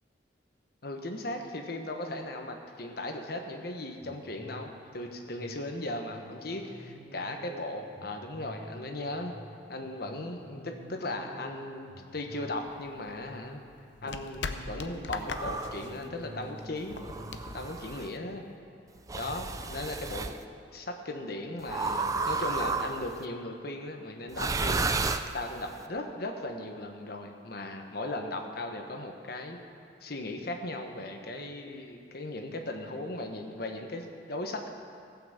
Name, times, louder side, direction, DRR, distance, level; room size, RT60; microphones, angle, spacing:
voice 1, 0.8-9.3 9.7-13.6 14.0-17.0 17.5-18.4 19.1-20.3 20.7-24.8 25.3-29.6 30.0-34.7, left 2 dB, 60° left, 3 dB, 1.2 m, -37 dB
sound 1, 4.0-19.7 20.1-20.2, equal, 15° left, 3.2 m, -50 dB
sound 2, 12.6-18.6, left 4 dB, 75° left, 0.7 m, -41 dB
sound 3, 15.3-15.9 16.9-18.1 19.1-20.4 21.7-23.2 24.3-25.7, right 4 dB, 20° right, 0.4 m, -32 dB
15.5 x 6.0 x 7.4 m, 2.4 s
head